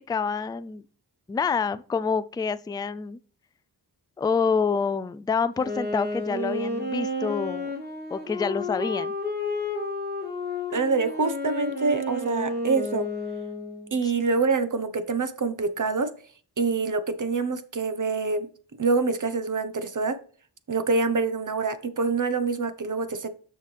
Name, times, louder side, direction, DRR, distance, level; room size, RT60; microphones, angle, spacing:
voice 1, 0.1-0.8 1.3-3.2 4.2-7.7 8.1-9.1 14.0-14.1, left 5 dB, 10° left, 0.3 m, -27 dB
Wind instrument woodwind instrument, 5.6-13.9, left 2 dB, 25° right, 3.7 m, -31 dB
voice 2, 10.7-13.1 13.9-16.1 16.6-18.5 18.8-20.2 20.7-23.3, right 4 dB, 45° right, 1.0 m, -26 dB
6.6 x 6.4 x 3.3 m
cardioid pair, 60°, 42 cm